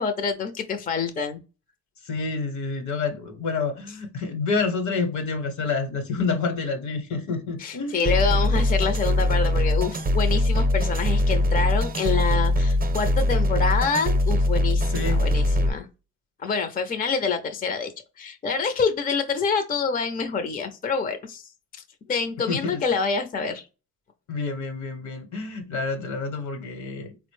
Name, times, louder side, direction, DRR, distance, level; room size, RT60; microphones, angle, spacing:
voice 1, 0.0-1.4 7.6-15.9 16.4-17.9 18.2-21.4 22.1-23.6, left 5 dB, 30° left, 0.5 m, -26 dB
voice 2, 2.0-8.2 14.9-15.3 22.5-22.8 24.3-27.2, left 4 dB, 70° left, 1.0 m, -28 dB
sound 1, 8.1-15.7, left 1 dB, 30° right, 0.6 m, -22 dB
3.9 x 2.1 x 3.1 m
cardioid pair, 90°, 30 cm